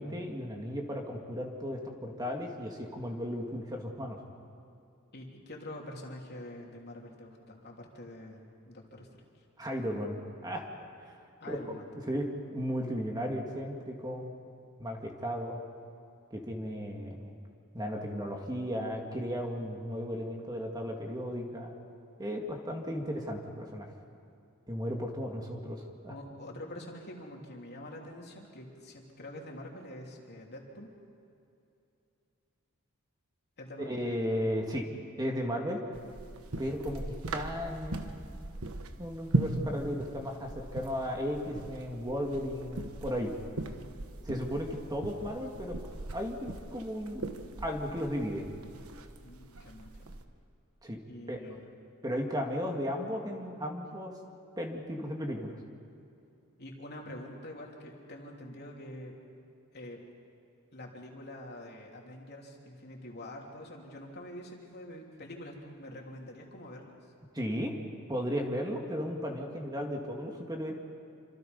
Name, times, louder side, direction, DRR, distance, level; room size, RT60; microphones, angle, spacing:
voice 1, 0.0-4.2 9.6-10.6 11.0-11.2 11.5-11.6 12.1-14.3 14.8-15.6 16.3-17.3 17.7-21.7 22.2-23.9 24.7-26.1 33.9-34.9 35.2-35.8 36.6-38.3 38.6-43.3 44.2-45.8 46.1-47.3 47.6-48.4 50.8-51.0 51.3-51.4 52.0-54.1 54.6-55.6 67.3-67.7 68.1-70.7, equal, 20° right, 1 dB, 1.9 m, -35 dB
voice 2, 5.1-9.1 9.3-9.4 11.4-11.8 26.1-30.9 33.6-34.0 49.2-50.2 51.1-51.7 56.6-59.1 59.7-60.0 60.7-66.9, left 1 dB, 50° left, 0 dB, 3.4 m, -46 dB
sound 1, 35.9-50.2, right 2 dB, 70° right, 1.3 m, -39 dB
27.5 x 26.0 x 5.4 m, 2.7 s
head